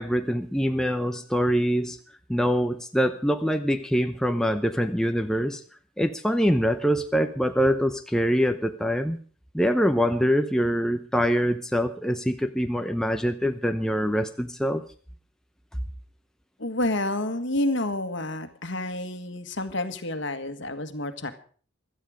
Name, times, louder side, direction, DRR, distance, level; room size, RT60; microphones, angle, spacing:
voice 1, 0.0-2.0 2.3-5.6 6.0-9.2 9.5-14.8, equal, 5° left, 6 dB, 0.7 m, -24 dB
voice 2, 16.6-21.3, left 1 dB, 55° left, 9 dB, 1.8 m, -29 dB
17.0 x 13.0 x 5.0 m, 0.43 s
head